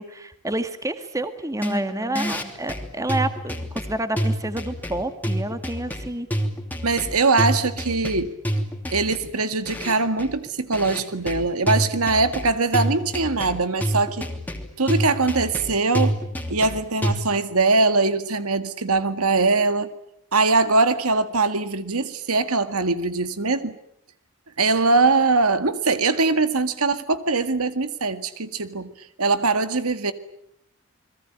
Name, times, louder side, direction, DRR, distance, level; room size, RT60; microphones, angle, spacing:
voice 1, 0.0-6.3, right 1 dB, 15° right, 10 dB, 1.7 m, -29 dB
sound 1, 1.6-17.1, equal, 10° left, 2.8 m, -28 dB
voice 2, 6.8-8.3 8.9-14.3 14.8-16.2 16.5-19.9 20.3-23.8 24.6-28.9 29.2-30.1, right 3 dB, 80° right, 11 dB, 1.9 m, -22 dB
29.5 x 22.0 x 8.9 m, 0.73 s
head